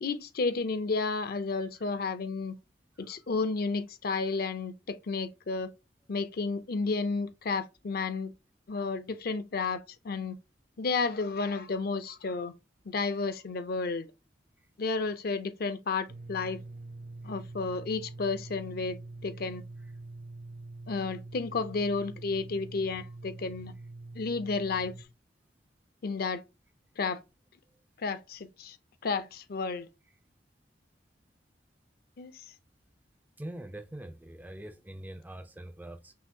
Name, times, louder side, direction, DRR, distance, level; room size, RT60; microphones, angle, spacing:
voice 1, 0.0-2.6 3.0-5.7 6.1-8.3 8.7-10.4 10.8-12.5 12.9-14.1 14.8-16.6 17.2-19.6 20.9-23.7 24.1-24.9 26.0-26.4 27.0-27.2 28.0-28.8 29.0-29.9 32.2-32.4, left 4 dB, 55° left, 0.5 m, -32 dB
sound 1, 16.1-25.0, right 2 dB, 55° right, 0.7 m, -45 dB
voice 2, 33.4-36.1, right 1 dB, 10° right, 0.3 m, -44 dB
5.7 x 2.6 x 2.7 m
head